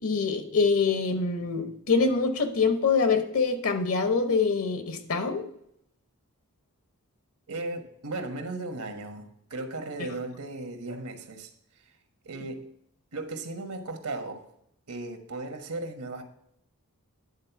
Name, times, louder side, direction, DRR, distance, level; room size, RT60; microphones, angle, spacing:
voice 1, 0.0-5.5, left 4 dB, 70° left, 8 dB, 1.0 m, -25 dB
voice 2, 7.5-11.5 12.2-12.7 13.1-14.4 14.9-16.2, right 2 dB, 85° right, 6 dB, 1.3 m, -36 dB
9.7 x 4.0 x 5.8 m, 0.74 s
head